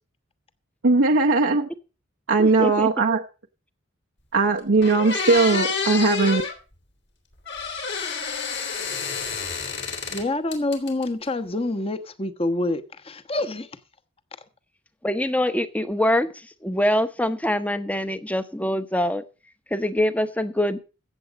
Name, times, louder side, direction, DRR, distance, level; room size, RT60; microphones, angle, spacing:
voice 1, 0.8-1.7 2.3-3.2 4.3-6.4, right 3 dB, 75° right, 0.9 m, -19 dB
voice 2, 2.4-2.9 15.0-19.2 19.7-20.8, left 1 dB, 5° left, 0.9 m, -24 dB
sound 1, 4.3-4.4 4.8-6.5 7.5-10.2 10.5-11.2, left 5 dB, 60° left, 3.4 m, -28 dB
voice 3, 10.1-13.7, left 2 dB, 30° left, 1.1 m, -27 dB
15.5 x 7.8 x 5.2 m
head